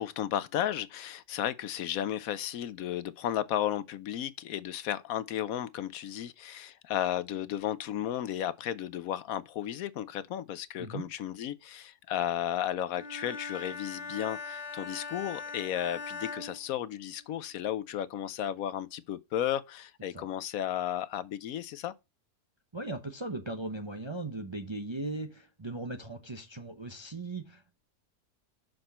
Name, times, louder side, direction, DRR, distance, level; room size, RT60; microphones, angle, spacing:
voice 1, 0.0-21.9, left 11 dB, 70° left, 1.0 m, -34 dB
Bowed string instrument, 12.9-17.4, left 4 dB, 30° left, 0.9 m, -41 dB
voice 2, 22.7-27.8, right 2 dB, 25° right, 0.6 m, -38 dB
6.5 x 6.0 x 4.2 m
omnidirectional pair, 1.6 m